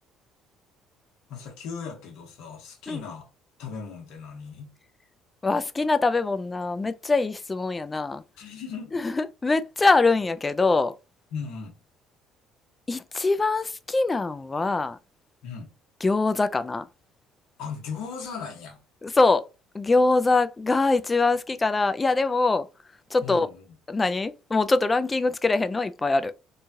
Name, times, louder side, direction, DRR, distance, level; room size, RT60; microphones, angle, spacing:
voice 1, 1.3-3.3 3.6-4.7 8.4-9.0 11.3-11.8 15.4-15.7 17.6-18.8 23.2-23.6, left 6 dB, 80° left, 1.1 m, -37 dB
voice 2, 5.4-8.2 8.9-10.9 12.9-15.0 16.0-16.9 19.0-19.4 19.7-22.7 23.1-23.5 23.9-26.3, left 3 dB, 20° left, 0.3 m, -23 dB
3.0 x 2.3 x 2.7 m
cardioid pair, 90°, 0 cm